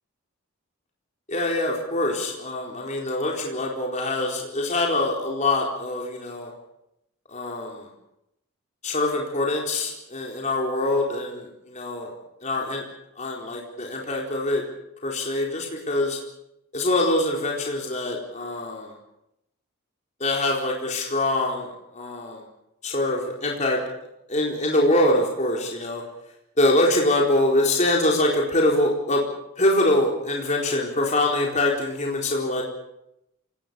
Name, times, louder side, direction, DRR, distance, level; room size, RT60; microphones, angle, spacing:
voice 1, 1.3-6.5 7.3-7.8 8.8-12.1 12.4-12.8 13.2-14.6 15.0-16.2 16.7-18.9 20.2-22.4 22.8-23.8 24.3-26.0 26.6-29.2 29.6-32.6, left 1 dB, 35° left, -1 dB, 4.3 m, -24 dB
27.5 x 19.0 x 7.0 m, 0.83 s
head